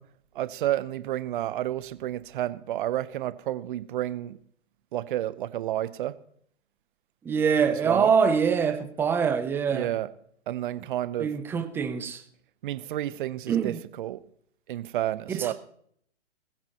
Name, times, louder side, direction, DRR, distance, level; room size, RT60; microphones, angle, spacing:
voice 1, 0.3-4.4 4.9-6.1 7.8-8.1 9.7-10.1 10.5-11.3 12.6-14.2 14.7-15.5, right 13 dB, 45° right, 0.8 m, -30 dB
voice 2, 7.2-9.9 11.2-12.2 13.5-13.8 15.3-15.5, right 6 dB, 5° right, 0.5 m, -24 dB
20.5 x 15.5 x 2.9 m
hypercardioid pair, 135°, 35 cm